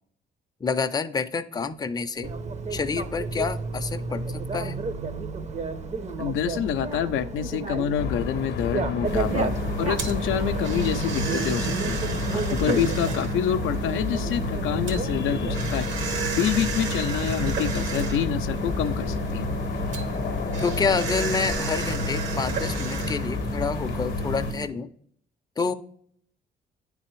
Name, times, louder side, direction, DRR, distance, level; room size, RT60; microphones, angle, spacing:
voice 1, 0.6-2.3 2.7-4.8 12.7-12.9 20.6-24.9 25.6-25.8, left 5 dB, 20° left, 9 dB, 0.4 m, -28 dB
Bicycle, 2.2-20.4, right 4 dB, 35° right, 0.6 m, -33 dB
voice 2, 6.2-9.5 9.8-12.0 12.3-15.9 16.4-19.5, left 9 dB, 85° left, 9 dB, 0.4 m, -27 dB
sound 1, 8.0-24.5, left 5 dB, 55° left, 0.7 m, -32 dB
sound 2, 9.0-24.7, right 3 dB, 75° right, 1.1 m, -31 dB
9.6 x 3.4 x 3.1 m, 0.63 s
cardioid pair, 90°, 20 cm